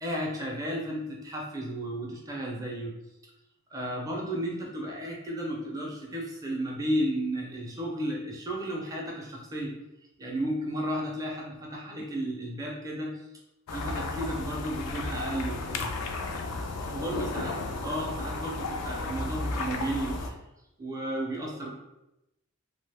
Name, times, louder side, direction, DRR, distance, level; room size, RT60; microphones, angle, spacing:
voice 1, 0.0-3.0 3.7-9.8 10.2-13.2 13.7-15.9 16.9-20.4 20.8-21.7, right 1 dB, 15° right, -2 dB, 0.5 m, -33 dB
sound 1, 13.7-20.3, left 3 dB, 85° left, 0.4 m, -33 dB
2.8 x 2.1 x 3.3 m, 0.91 s
head